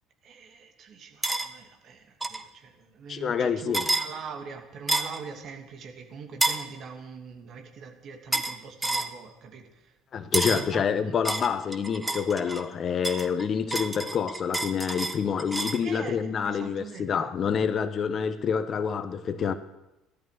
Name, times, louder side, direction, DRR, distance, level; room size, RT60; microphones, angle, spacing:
voice 1, 0.2-10.0 10.5-11.2 15.8-16.2 16.4-17.3, right 5 dB, 50° right, 2.6 m, -43 dB
sound 1, 1.2-1.5 2.2-2.4 3.7-4.1 4.9-5.2 6.4-6.7 8.3-8.6 8.8-9.1 10.3-10.7 11.2-12.6 13.0-15.8, right 2 dB, 15° right, 1.4 m, -29 dB
voice 2, 3.1-3.8 10.1-19.5, left 7 dB, 45° left, 1.2 m, -27 dB
16.0 x 13.0 x 6.6 m
hypercardioid pair, 60°, 0 cm